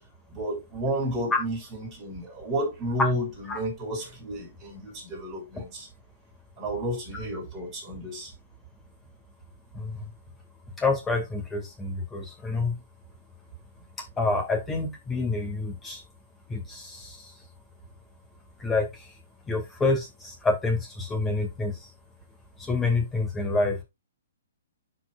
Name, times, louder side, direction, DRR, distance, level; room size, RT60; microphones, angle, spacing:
voice 1, 0.3-5.9 6.6-8.3, right 1 dB, 15° right, 5.9 m, -32 dB
voice 2, 10.8-12.7 14.2-16.0 16.5-17.3 18.6-19.1 19.5-21.9 22.6-23.8, left 3 dB, 10° left, 2.4 m, -28 dB
11.5 x 4.8 x 2.6 m
hypercardioid pair, 160°, 0 cm